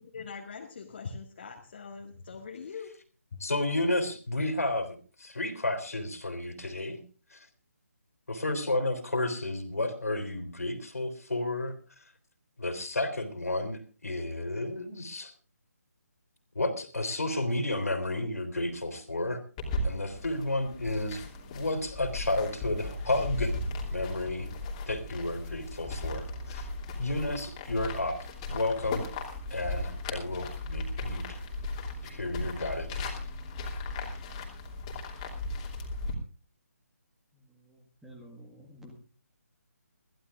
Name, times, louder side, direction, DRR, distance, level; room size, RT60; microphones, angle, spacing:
voice 1, 0.0-2.9 3.3-3.4, left 5 dB, 40° left, 0 dB, 2.0 m, -42 dB
voice 2, 3.4-7.0 7.3-7.5 8.3-11.8 12.6-15.3 16.6-19.4 19.8-23.5 23.9-24.5 24.9-26.7 27.0-28.1 28.5-29.0 29.5-31.4 32.0-33.1, left 2 dB, 65° left, 9 dB, 3.4 m, -32 dB
sound 1, 19.6-36.1, left 2 dB, 20° left, 2.9 m, -37 dB
voice 3, 37.3-38.9, equal, 5° right, 2 dB, 1.7 m, -51 dB
22.0 x 15.5 x 2.5 m, 0.38 s
figure-of-eight pair, 145°, 9 cm